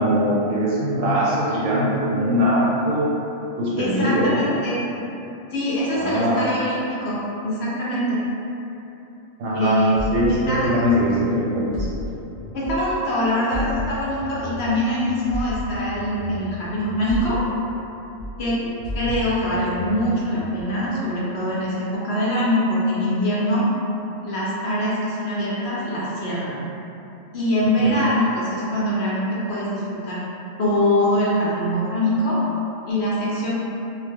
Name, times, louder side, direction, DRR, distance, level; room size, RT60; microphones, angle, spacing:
voice 1, 0.0-3.2 3.6-4.5 5.9-6.4 9.4-9.8 10.1-11.8 19.1-19.2 27.8-28.0, equal, 85° right, -6 dB, 1.0 m, -21 dB
voice 2, 3.8-4.8 5.5-8.2 9.5-9.9 10.3-10.7 12.5-17.4 18.4-18.6 18.9-23.6 24.2-26.6 27.3-30.2 30.6-32.4 32.9-33.5, left 1 dB, 65° left, -8 dB, 0.7 m, -23 dB
sound 1, 10.0-13.1 13.5-17.9 18.2-20.6, left 1 dB, 55° right, 0.6 m, -34 dB
2.2 x 2.1 x 3.3 m, 2.9 s
omnidirectional pair, 1.4 m